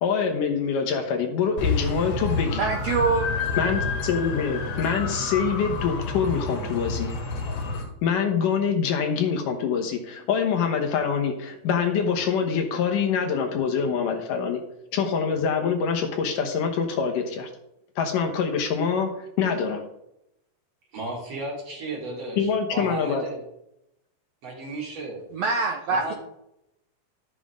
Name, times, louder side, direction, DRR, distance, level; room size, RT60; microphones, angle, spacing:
voice 1, 0.0-2.7 3.6-7.1 8.0-14.6 14.9-17.5 18.0-19.8 22.4-23.2, left 6 dB, 70° left, 3 dB, 2.6 m, -25 dB
sound 1, 1.6-7.8, left 4 dB, 90° left, 3.9 m, -29 dB
voice 2, 2.6-3.3 25.3-26.1, right 4 dB, 80° right, 2 dB, 1.4 m, -24 dB
voice 3, 20.9-23.4 24.4-25.2 25.9-26.1, right 2 dB, 45° right, -2 dB, 3.2 m, -34 dB
12.5 x 7.4 x 3.7 m, 0.82 s
omnidirectional pair, 4.2 m